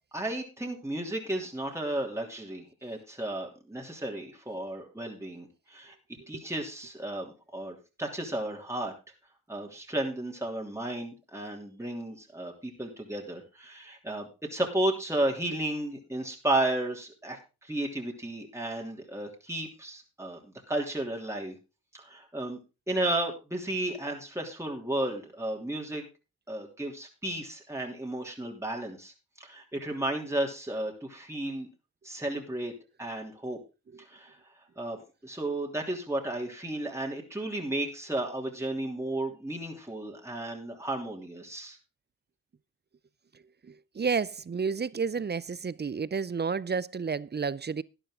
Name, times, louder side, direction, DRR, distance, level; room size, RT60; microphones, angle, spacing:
voice 1, 0.1-5.9 6.3-8.9 9.5-21.6 21.9-22.6 22.9-26.0 26.5-31.7 32.0-32.7 33.0-33.6 34.1-34.4 34.8-41.8, right 1 dB, 10° right, 3.0 m, -33 dB
voice 2, 43.6-47.8, right 5 dB, 30° right, 0.5 m, -31 dB
12.5 x 10.0 x 3.8 m
cardioid pair, 50°, 36 cm